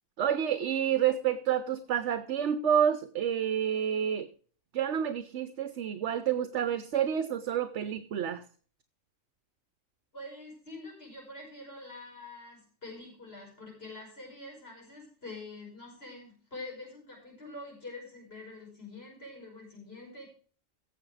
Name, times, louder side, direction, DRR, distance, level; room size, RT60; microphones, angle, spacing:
voice 1, 0.2-4.3 4.7-8.4, right 9 dB, 65° right, 12 dB, 1.0 m, -29 dB
voice 2, 10.1-20.3, left 2 dB, 50° left, 0 dB, 5.7 m, -45 dB
16.0 x 7.1 x 4.8 m, 0.43 s
omnidirectional pair, 1.4 m